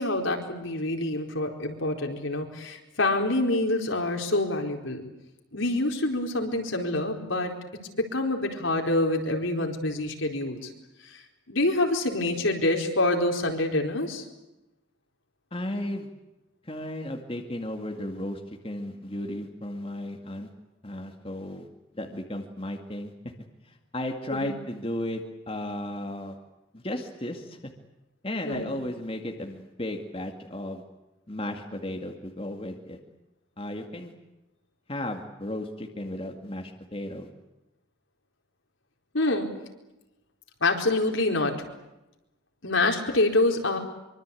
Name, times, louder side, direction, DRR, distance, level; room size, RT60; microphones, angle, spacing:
voice 1, 0.0-5.0 5.5-7.5 8.0-10.7 11.0-11.2 11.5-14.2 24.3-24.6 28.4-28.8 39.1-39.5 40.6-41.6 42.6-43.8, left 2 dB, 70° left, 3 dB, 4.4 m, -26 dB
voice 2, 15.5-16.1 16.6-20.5 20.8-21.7 21.9-23.1 23.6-26.4 26.7-27.6 28.2-30.8 31.3-33.0 33.6-34.1 34.9-37.3, left 1 dB, 25° left, 3 dB, 2.2 m, -34 dB
25.0 x 24.5 x 8.5 m, 0.97 s
head